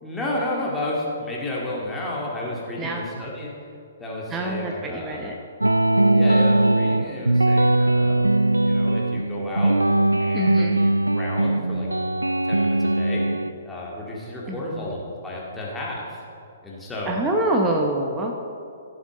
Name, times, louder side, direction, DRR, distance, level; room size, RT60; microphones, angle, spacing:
voice 1, 0.0-3.5 4.0-5.3 6.1-8.3 8.6-9.8 10.2-11.9 12.3-13.2 13.6-16.2 16.6-17.2, left 1 dB, 10° left, -5 dB, 2.1 m, -32 dB
voice 2, 4.3-5.3 10.3-10.8 14.5-14.9 17.1-18.3, right 1 dB, 15° right, 1 dB, 0.8 m, -26 dB
sound 1, 5.6-13.5, right 2 dB, 85° right, 0.3 m, -20 dB
15.0 x 7.3 x 3.8 m, 2.5 s
figure-of-eight pair, 120°, 0 cm